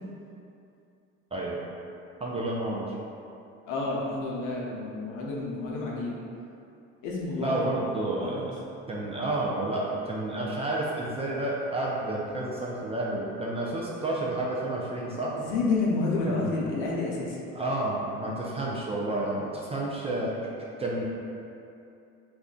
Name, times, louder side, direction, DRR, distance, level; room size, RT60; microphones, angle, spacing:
voice 1, 2.2-2.9 7.4-8.6 8.9-15.3 16.3-16.6 17.5-20.4 20.8-21.1, right 1 dB, 20° right, -4 dB, 0.4 m, -30 dB
voice 2, 3.7-6.2 7.0-7.6 8.2-8.5 15.3-17.4, left 3 dB, 65° left, -3 dB, 0.7 m, -29 dB
2.4 x 2.2 x 3.6 m, 2.6 s
hypercardioid pair, 75°, 34 cm